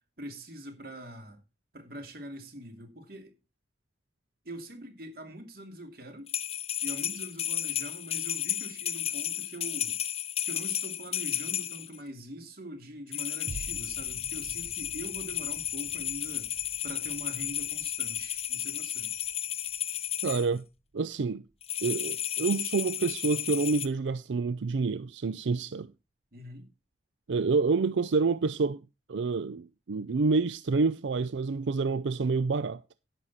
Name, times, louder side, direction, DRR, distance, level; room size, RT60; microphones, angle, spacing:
voice 1, 0.2-1.4 1.7-3.3 4.4-6.3 6.8-10.0 10.4-16.5 16.8-19.1 26.3-26.7, equal, 55° right, 2.8 m, -43 dB
sound 1, 6.3-12.0 13.1-20.5 21.6-23.9, left 11 dB, 35° left, 0.8 m, -33 dB
sound 2, 13.5-22.0 22.5-22.6, right 2 dB, 40° right, 0.6 m, -49 dB
voice 2, 20.2-20.7 20.9-21.4 21.8-25.9 27.3-28.8 29.1-32.8, right 4 dB, 90° right, 0.5 m, -28 dB
11.0 x 9.0 x 4.1 m
head